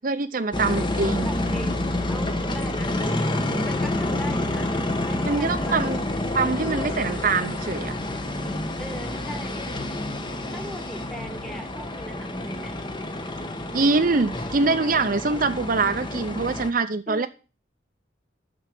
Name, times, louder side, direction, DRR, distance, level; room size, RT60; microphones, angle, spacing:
voice 1, 0.0-1.3 5.3-6.0 6.3-7.9 13.7-17.3, right 3 dB, 50° right, 8 dB, 0.7 m, -24 dB
sound 1, 0.5-16.7, left 1 dB, 25° left, 1.1 m, -28 dB
voice 2, 1.2-2.9 3.6-5.9 8.8-9.7 10.5-12.8 17.1-17.3, equal, 5° left, 6 dB, 1.5 m, -39 dB
13.0 x 4.8 x 7.8 m, 0.34 s
head